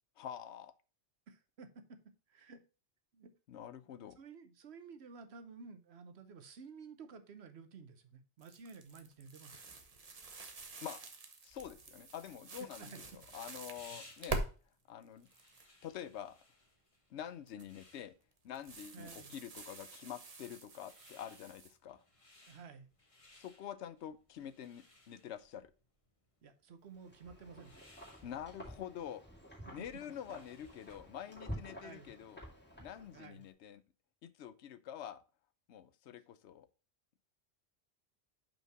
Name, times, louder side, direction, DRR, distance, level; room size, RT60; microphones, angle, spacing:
voice 1, 0.2-0.7 3.5-4.2 10.8-11.0 11.4-14.5 14.9-15.3 15.8-16.4 17.1-18.1 18.4-22.0 23.3-25.7 28.2-29.3 29.7-32.4 32.8-33.8 34.2-35.2 35.7-36.7, left 10 dB, 85° left, 0.9 m, -47 dB
voice 2, 1.3-2.6 3.1-3.3 4.2-9.7 12.8-13.0 18.9-19.3 22.5-22.9 26.4-27.8 29.6-29.9 31.8-32.1 33.1-33.4, right 5 dB, 70° right, 1.1 m, -53 dB
sound 1, 8.4-14.5 15.0-15.6 17.5-17.8 18.5-21.7, right 3 dB, 35° right, 0.9 m, -46 dB
sound 2, 12.7-31.2, left 2 dB, 30° left, 1.4 m, -64 dB
Wind, 26.9-33.4, equal, 10° left, 2.4 m, -50 dB
5.5 x 4.4 x 5.8 m
omnidirectional pair, 1.1 m